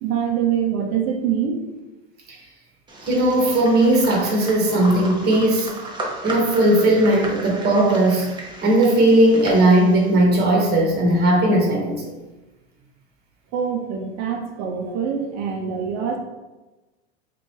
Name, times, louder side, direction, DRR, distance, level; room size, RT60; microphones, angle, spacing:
voice 1, 0.0-1.8 13.5-16.2, right 7 dB, 50° right, 2 dB, 0.8 m, -24 dB
sound 1, 2.9-10.2, right 2 dB, 15° right, 0.9 m, -35 dB
voice 2, 3.0-5.7 6.2-8.3 8.6-12.0, right 1 dB, 30° right, -1 dB, 1.2 m, -17 dB
3.0 x 2.6 x 4.4 m, 1.1 s
hypercardioid pair, 90°, 33 cm